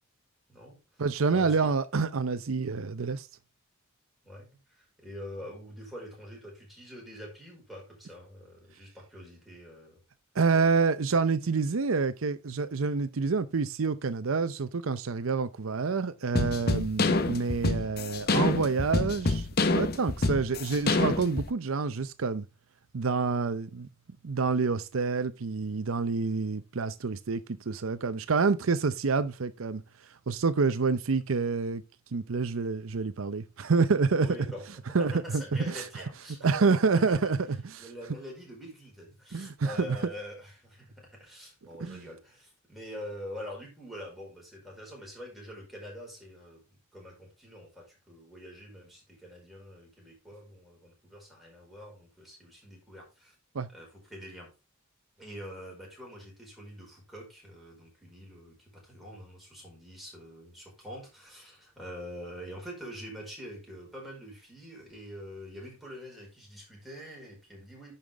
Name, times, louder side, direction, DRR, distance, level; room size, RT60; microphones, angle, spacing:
voice 1, 0.5-1.7 4.2-10.0 34.2-36.8 37.1-37.3 37.8-53.3 53.7-54.5 55.2-67.9, equal, ahead, 4.8 m, -45 dB
voice 2, 1.0-3.3 10.3-19.5 19.7-22.4 22.9-23.9 24.2-29.8 30.3-31.8 32.1-34.3 34.9-35.8 36.4-37.4 37.8-37.9 39.3-39.9 41.8-42.0 53.5-53.7, right 4 dB, 80° right, 0.6 m, -27 dB
sound 1, 16.3-21.5, left 2 dB, 50° left, 0.9 m, -27 dB
10.5 x 5.7 x 3.4 m
head